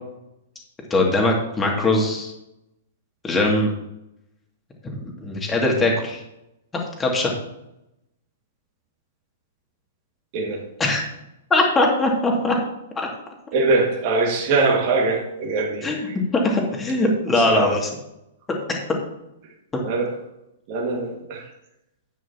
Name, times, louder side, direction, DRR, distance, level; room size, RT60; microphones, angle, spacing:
voice 1, 0.9-2.3 3.2-3.7 4.8-6.2 7.0-7.3 10.8-11.1 11.5-12.6 13.0-13.1 15.8-17.9 18.7-18.8 19.7-19.8, left 2 dB, 15° left, 0 dB, 2.5 m, -21 dB
voice 2, 13.5-15.9 17.4-17.7 19.8-20.1 20.7-21.4, right 3 dB, 40° right, -1 dB, 2.0 m, -22 dB
12.0 x 9.1 x 3.0 m, 0.85 s
figure-of-eight pair, 110°, 0 cm